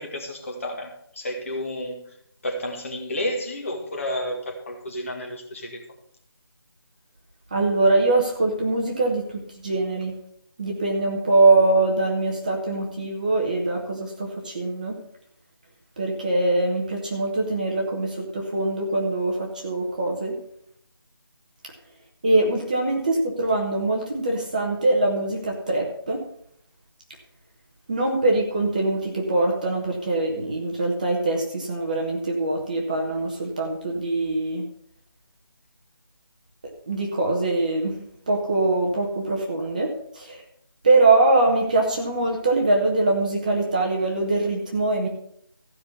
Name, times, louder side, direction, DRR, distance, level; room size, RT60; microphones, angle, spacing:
voice 1, 0.0-2.0 2.4-5.8, left 1 dB, 35° left, 1 dB, 2.1 m, -31 dB
voice 2, 7.5-10.1 10.6-15.0 16.0-20.4 22.2-26.3 27.9-34.6 36.9-40.4 40.8-45.1, right 2 dB, 20° right, 0 dB, 1.1 m, -23 dB
15.0 x 5.6 x 6.9 m, 0.69 s
figure-of-eight pair, 175°, 13 cm